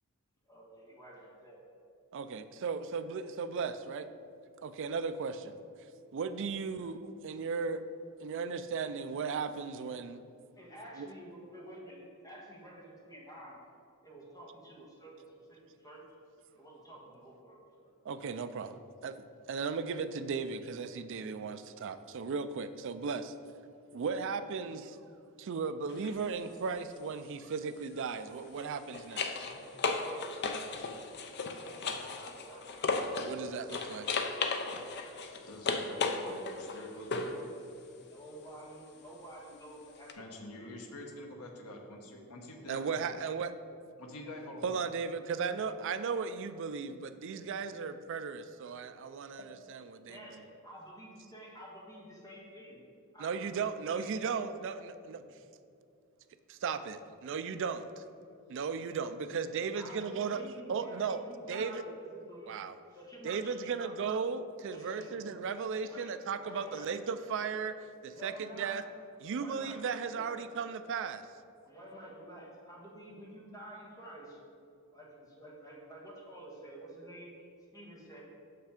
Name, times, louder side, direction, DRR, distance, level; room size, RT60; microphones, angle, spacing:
voice 1, 0.5-1.6 10.6-13.6 14.0-16.0 16.6-17.9 31.5-32.7 34.0-34.1 38.0-40.7 50.0-52.8 53.1-54.4 59.7-62.5 62.9-63.9 64.7-65.2 65.8-66.1 66.3-66.9 68.1-68.8 69.4-69.8 70.1-70.4 71.7-74.4 74.9-77.3 77.7-78.2, right 1 dB, 15° left, -4 dB, 1.4 m, -50 dB
voice 2, 2.1-4.1 4.6-5.6 6.1-7.8 8.2-10.2 11.0-11.1 18.0-19.2 19.5-23.3 23.9-25.0 25.4-29.5 33.2-34.1 42.7-43.5 44.6-50.2 53.2-55.2 56.5-57.9 58.5-61.2 61.5-61.9 62.5-62.8 63.2-67.8 68.0-68.8 69.2-71.2, right 5 dB, 55° right, 11 dB, 0.4 m, -36 dB
sound 1, 25.9-26.1 28.4-33.4 33.7-37.4 40.1-40.2, left 4 dB, 50° left, 0.5 m, -35 dB
voice 3, 35.4-37.5 40.2-43.0 44.0-44.8, left 1 dB, 85° left, 2 dB, 1.0 m, -46 dB
6.4 x 5.7 x 5.1 m, 2.5 s
head